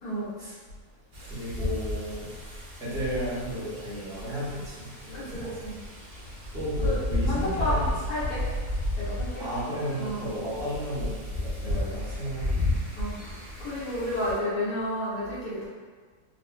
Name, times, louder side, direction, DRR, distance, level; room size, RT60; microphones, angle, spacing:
voice 1, 0.0-0.3 5.1-5.7 6.8-7.0 7.3-8.4 9.0-9.4 9.9-10.2 13.0-15.7, left 1 dB, 70° left, -9 dB, 1.6 m, -31 dB
Wind, 1.1-14.3, left 1 dB, 55° right, 1.1 m, -33 dB
voice 2, 1.2-2.3 2.8-5.6 6.5-8.3 9.4-12.6, equal, 5° right, -12 dB, 0.9 m, -34 dB
4.0 x 2.4 x 2.2 m, 1.5 s
omnidirectional pair, 1.7 m